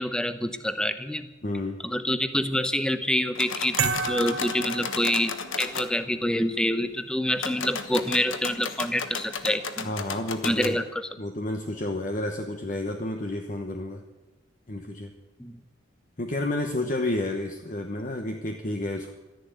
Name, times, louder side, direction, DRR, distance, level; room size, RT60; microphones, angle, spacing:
voice 1, 0.0-1.3 1.8-9.9 10.4-11.1 15.4-15.6, left 1 dB, 5° left, 11 dB, 0.7 m, -27 dB
voice 2, 1.4-1.8 9.8-10.8 11.2-14.0 14.7-15.1 16.2-19.1, left 1 dB, 40° left, 3 dB, 1.0 m, -30 dB
sound 1, 3.3-5.9 7.3-10.8, left 5 dB, 80° left, 1.2 m, -34 dB
sound 2, 3.8-5.7, right 5 dB, 90° right, 2.2 m, -30 dB
13.5 x 10.5 x 9.2 m, 1.1 s
head